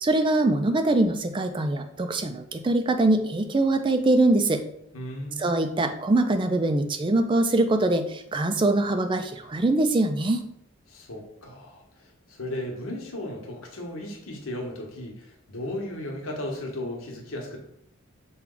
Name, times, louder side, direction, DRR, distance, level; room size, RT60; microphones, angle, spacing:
voice 1, 0.0-4.6 5.4-10.4, right 2 dB, 25° right, 8 dB, 0.4 m, -23 dB
voice 2, 4.9-5.5 10.9-17.6, left 1 dB, 85° left, 0 dB, 1.1 m, -35 dB
5.9 x 2.3 x 3.8 m, 0.73 s
head